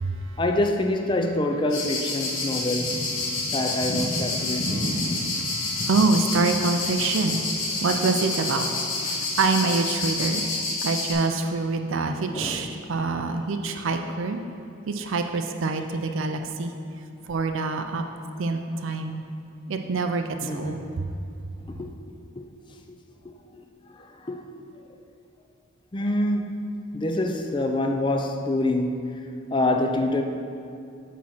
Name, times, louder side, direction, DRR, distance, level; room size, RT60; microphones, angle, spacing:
voice 1, 0.4-3.0 3.5-4.8 12.3-12.8 20.4-20.9 21.7-21.9 22.4-22.5 22.9-23.0 23.2-23.6 23.9-24.8 25.9-30.2, left 1 dB, 20° left, 4 dB, 0.4 m, -26 dB
sound 1, 1.7-11.1, left 2 dB, 70° left, 1.4 m, -28 dB
voice 2, 4.4-10.5 10.8-14.4 14.9-16.7 17.3-18.0 18.4-19.2 19.7-21.1, right 3 dB, 65° right, 6 dB, 0.4 m, -26 dB
8.3 x 3.7 x 6.0 m, 2.6 s
head